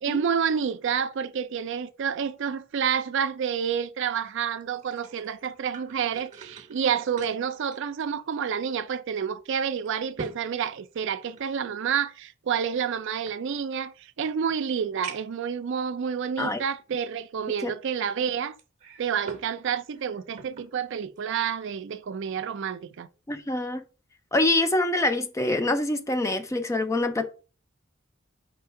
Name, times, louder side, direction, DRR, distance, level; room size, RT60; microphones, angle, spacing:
voice 1, 0.0-18.6 19.0-23.1, right 7 dB, 65° right, 0.4 m, -29 dB
sound 1, 4.6-8.6 8.9-9.0 9.6-11.6 12.5-13.9 14.5-14.6 15.0-15.5 16.2-16.3 18.6-19.5 19.9-20.7 21.2-21.4, right 4 dB, 35° right, 0.7 m, -45 dB
voice 2, 23.3-23.8 24.3-27.3, left 2 dB, 15° left, 0.4 m, -25 dB
4.3 x 2.8 x 4.4 m
head